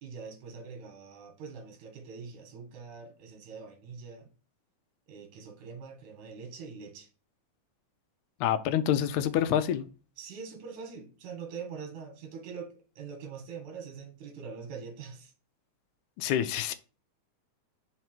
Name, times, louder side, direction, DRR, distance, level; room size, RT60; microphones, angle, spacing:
voice 1, 0.0-4.3 5.1-7.1 10.2-15.3, right 5 dB, 75° right, 3.0 m, -43 dB
voice 2, 8.4-9.9 16.2-16.7, left 10 dB, 80° left, 2.0 m, -27 dB
5.7 x 4.6 x 4.4 m
omnidirectional pair, 3.4 m